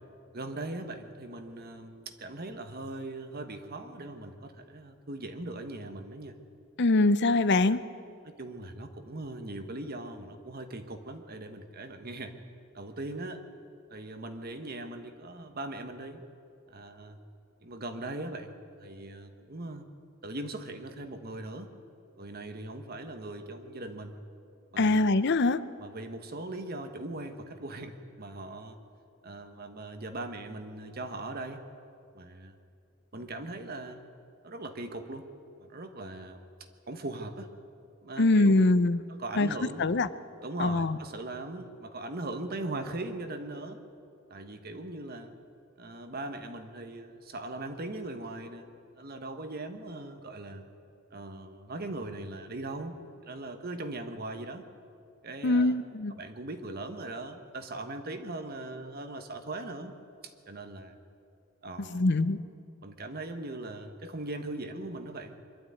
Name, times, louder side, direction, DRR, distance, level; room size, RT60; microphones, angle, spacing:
voice 1, 0.3-6.4 8.2-12.3 12.7-13.4 13.9-16.2 16.7-17.2 17.6-19.8 20.2-21.7 22.2-24.2 24.7-25.1 25.8-28.8 29.2-31.6 32.1-32.5 33.1-34.0 34.4-35.3 35.6-36.5 36.9-37.5 38.0-38.7 39.1-39.9 40.4-43.8 44.3-45.3 45.8-48.7 48.9-50.6 51.1-52.9 53.2-54.6 55.2-55.7 56.2-59.9 60.2-61.0 61.6-62.0 62.8-65.4, right 2 dB, 50° right, 7 dB, 1.4 m, -40 dB
voice 2, 6.8-7.8 24.8-25.6 38.2-39.0 39.4-39.5 39.8-40.1 40.6-41.0 55.4-56.1 61.9-62.4, left 2 dB, 55° left, 14 dB, 0.7 m, -23 dB
23.5 x 12.0 x 9.4 m, 2.4 s
head